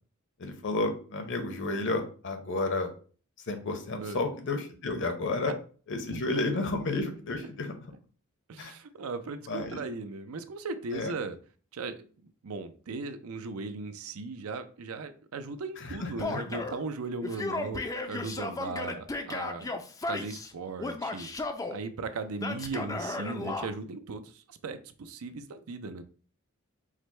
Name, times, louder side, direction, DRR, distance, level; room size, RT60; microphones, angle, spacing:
voice 1, 0.4-2.9 3.5-5.5 5.9-7.9 8.6-8.7 9.5-9.8 10.9-11.1 15.8-16.4 23.6-23.7, left 2 dB, 60° left, 6 dB, 0.8 m, -32 dB
voice 2, 8.5-11.4 11.7-12.0 12.2-17.8 18.1-19.7 20.1-21.3 21.7-26.0, right 3 dB, 70° right, 10 dB, 0.5 m, -37 dB
Male speech man speaking / Yell, 16.2-16.8 17.2-20.5 20.8-21.8 22.4-23.7, left 2 dB, 15° left, 0.4 m, -35 dB
4.9 x 2.1 x 4.2 m, 0.40 s
head